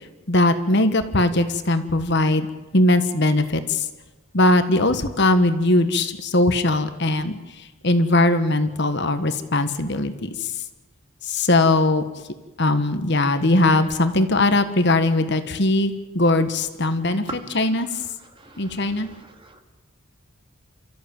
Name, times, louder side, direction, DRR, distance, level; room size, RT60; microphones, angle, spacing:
voice 1, 0.3-2.5 2.7-3.9 4.3-7.4 7.8-10.5 11.2-12.0 12.6-17.2 17.5-17.9 18.6-19.1, left 2 dB, 50° left, 9 dB, 1.5 m, -20 dB
voice 2, 17.3-17.6 18.4-19.6, right 2 dB, 25° right, 4 dB, 2.2 m, -40 dB
29.5 x 14.5 x 8.9 m, 1.2 s
head